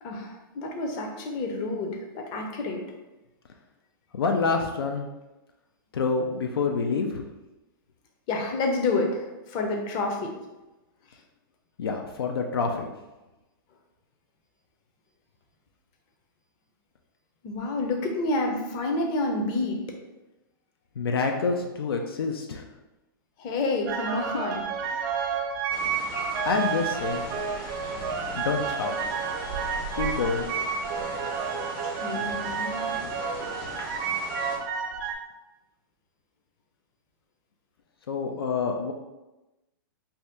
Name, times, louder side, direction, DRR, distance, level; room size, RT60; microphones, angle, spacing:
voice 1, 0.0-2.8 8.3-10.3 17.4-19.8 23.4-24.7 32.0-33.0, left 2 dB, 40° left, 1 dB, 0.6 m, -29 dB
voice 2, 4.1-5.1 5.9-7.2 11.8-12.9 21.0-22.6 26.4-27.2 28.4-28.9 29.9-30.5 38.1-38.9, left 4 dB, 85° left, 3 dB, 0.4 m, -27 dB
sound 1, 23.9-35.1, right 6 dB, 50° right, 0.4 m, -30 dB
sound 2, 25.7-34.6, left 1 dB, 65° left, 1.0 m, -40 dB
2.7 x 2.1 x 3.4 m, 1.0 s
hypercardioid pair, 120°, 12 cm